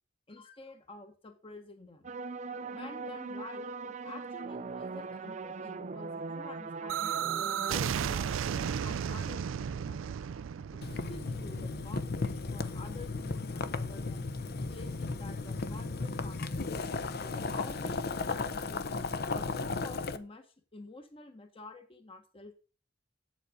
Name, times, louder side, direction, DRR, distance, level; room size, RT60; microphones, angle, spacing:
voice 1, 0.3-2.1 2.7-7.1 7.6-10.2 10.7-14.3 14.7-16.8 17.2-18.9 19.3-22.5, left 2 dB, 30° left, 7 dB, 1.1 m, -49 dB
sound 1, 2.0-7.8, right 4 dB, 40° right, 0.6 m, -40 dB
sound 2, 6.9-12.6, right 8 dB, 85° right, 0.4 m, -34 dB
Boiling, 10.8-20.2, left 3 dB, 55° left, 0.7 m, -35 dB
8.2 x 7.5 x 5.1 m, 0.37 s
head